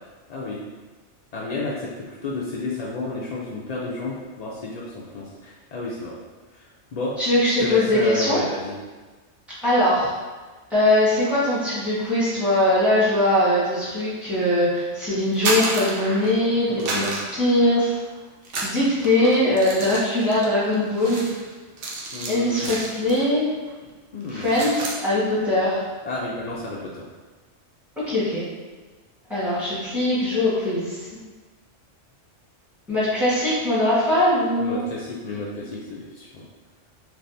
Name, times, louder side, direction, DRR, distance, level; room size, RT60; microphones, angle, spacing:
voice 1, 0.3-0.6 1.3-6.2 6.5-7.2 7.6-8.8 16.7-17.2 22.1-22.7 24.1-24.6 26.0-27.0 34.6-36.4, left 2 dB, 75° left, -5 dB, 0.3 m, -31 dB
voice 2, 7.2-8.4 9.6-10.1 10.7-17.9 18.6-21.3 22.3-23.5 24.3-25.8 28.0-28.4 29.3-31.0 32.9-34.8, left 1 dB, ahead, -10 dB, 1.3 m, -21 dB
sound 1, 15.2-16.5 16.8-18.0 18.4-23.4 23.6-23.9 24.2-25.0, right 2 dB, 75° right, 1.0 m, -31 dB
3.4 x 2.7 x 2.6 m, 1.3 s
omnidirectional pair, 1.2 m